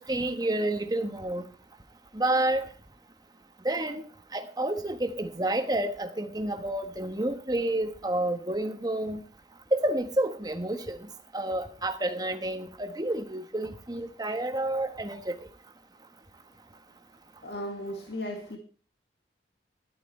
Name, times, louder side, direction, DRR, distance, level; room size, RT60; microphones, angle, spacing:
voice 1, 0.0-1.4 2.1-2.7 3.6-4.0 4.3-9.2 9.7-11.0 11.3-15.4, right 1 dB, 20° right, 7 dB, 1.3 m, -29 dB
voice 2, 17.4-18.6, left 1 dB, 75° left, 2 dB, 2.0 m, -36 dB
13.0 x 11.0 x 4.3 m, 0.40 s
head